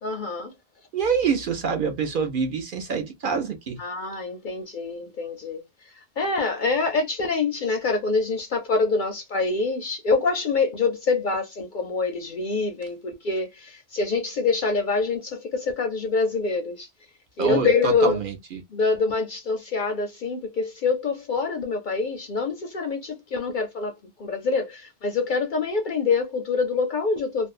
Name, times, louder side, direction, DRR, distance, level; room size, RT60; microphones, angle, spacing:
voice 1, 0.0-0.5 3.8-5.6 6.2-16.9 17.4-18.2 18.7-27.5, left 4 dB, 55° left, 0.6 m, -25 dB
voice 2, 0.9-3.8 17.4-18.6, right 6 dB, 55° right, 0.7 m, -26 dB
2.5 x 2.1 x 2.4 m
omnidirectional pair, 1.2 m